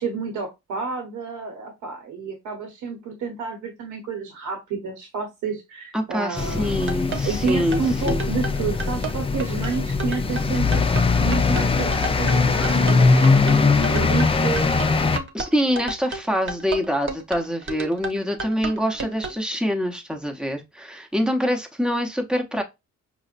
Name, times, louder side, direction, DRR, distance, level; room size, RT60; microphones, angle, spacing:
voice 1, 0.0-6.9 7.2-14.9, right 5 dB, 85° right, 1.0 m, -30 dB
voice 2, 5.9-7.8 8.1-8.2 15.3-22.6, equal, 5° right, 0.8 m, -25 dB
sound 1, 6.4-15.2, left 4 dB, 20° left, 0.4 m, -21 dB
sound 2, 6.6-19.4, right 3 dB, 40° right, 0.9 m, -32 dB
5.4 x 2.0 x 2.5 m
cardioid pair, 90°, 30 cm